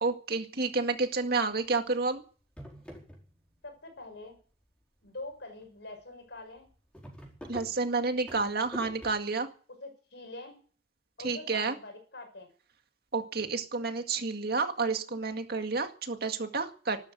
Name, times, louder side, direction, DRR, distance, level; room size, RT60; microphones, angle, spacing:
voice 1, 0.0-2.2 7.5-9.5 11.2-11.8 13.1-17.0, right 4 dB, 60° right, 6 dB, 2.1 m, -30 dB
sound 1, 1.3-1.5 2.0-2.1 2.4-3.7 4.0-4.6 5.2-5.3 5.6-5.7 6.0-6.1 6.4-9.1, equal, 5° left, 4.6 m, -46 dB
voice 2, 3.6-4.4 5.0-6.7 9.8-10.6 11.2-12.5, left 2 dB, 70° left, 6 dB, 6.1 m, -44 dB
13.0 x 12.0 x 9.2 m, 0.42 s
head